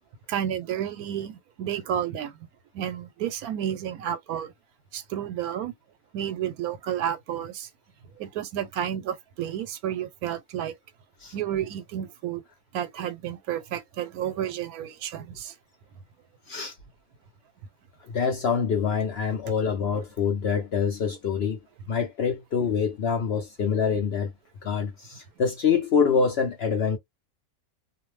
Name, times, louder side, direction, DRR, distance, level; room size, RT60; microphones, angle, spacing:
voice 1, 0.3-2.4 2.7-4.5 4.9-5.7 6.1-7.7 8.2-10.7 11.3-12.4 12.7-15.5, right 10 dB, 85° right, 1.1 m, -31 dB
voice 2, 18.1-21.6 21.9-24.3 24.6-27.0, left 6 dB, 60° left, 0.7 m, -25 dB
2.5 x 2.1 x 3.1 m
omnidirectional pair, 1.5 m